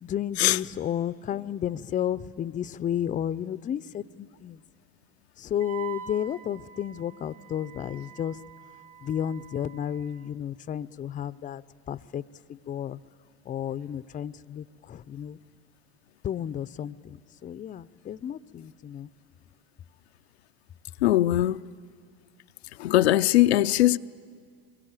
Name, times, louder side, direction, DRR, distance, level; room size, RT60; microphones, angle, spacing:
voice 1, 0.0-4.6 5.4-8.4 9.0-12.2 12.5-13.0 13.5-15.4 16.2-19.1, left 10 dB, 25° left, 0.6 m, -32 dB
Wind instrument woodwind instrument, 5.6-10.2, right 10 dB, 45° right, 2.9 m, -45 dB
voice 2, 21.0-21.6 22.8-24.0, left 15 dB, 85° left, 0.5 m, -20 dB
24.0 x 22.0 x 8.9 m
hypercardioid pair, 95°, 31 cm